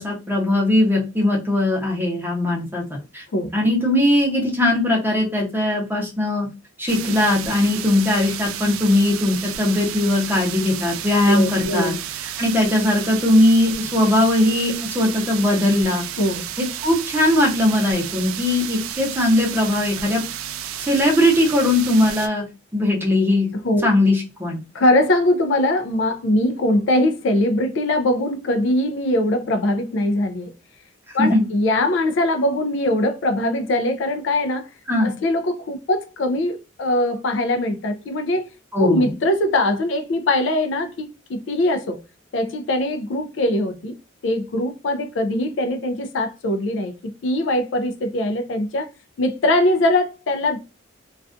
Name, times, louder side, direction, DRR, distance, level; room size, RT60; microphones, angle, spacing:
voice 1, 0.0-3.2 3.5-6.5 6.8-11.9 12.2-16.0 16.6-20.2 20.8-22.4 22.7-23.5 23.8-24.6 31.2-31.5 34.9-35.1 38.7-39.1, left 1 dB, 10° right, 0.7 m, -19 dB
sound 1, 6.9-22.3, right 11 dB, 85° right, 0.3 m, -32 dB
voice 2, 11.3-12.0 16.2-16.4 23.6-23.9 24.7-30.5 31.1-34.7 35.0-38.5 38.8-42.0 42.3-43.9 44.2-48.9 49.2-50.6, left 1 dB, 65° left, 0.4 m, -21 dB
2.3 x 2.3 x 2.4 m
head